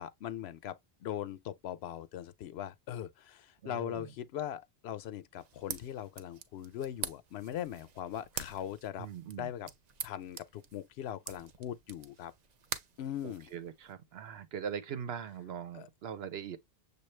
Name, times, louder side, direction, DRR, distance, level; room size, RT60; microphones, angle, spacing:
voice 1, 0.0-9.1 9.4-9.7 10.0-12.3 13.0-13.5 15.7-15.9, left 10 dB, 85° left, 0.8 m, -40 dB
voice 2, 3.6-4.1 9.0-9.5 13.2-16.6, right 8 dB, 80° right, 1.0 m, -41 dB
sound 1, 5.3-13.9, right 7 dB, 50° right, 0.6 m, -46 dB
6.8 x 2.3 x 3.2 m
omnidirectional pair, 1.0 m